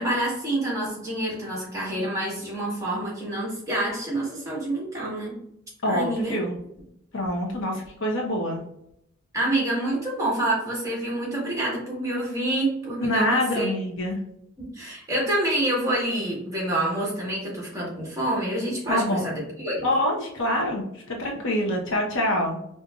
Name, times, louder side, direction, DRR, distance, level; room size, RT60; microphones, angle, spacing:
voice 1, 0.0-5.3 5.8-6.4 9.3-13.7 14.6-19.8, right 1 dB, 15° right, -4 dB, 1.5 m, -27 dB
voice 2, 5.8-6.5 7.1-8.6 13.0-14.2 18.9-19.3 19.8-22.6, left 1 dB, 75° left, 0 dB, 0.9 m, -25 dB
5.1 x 2.6 x 2.4 m, 0.78 s
head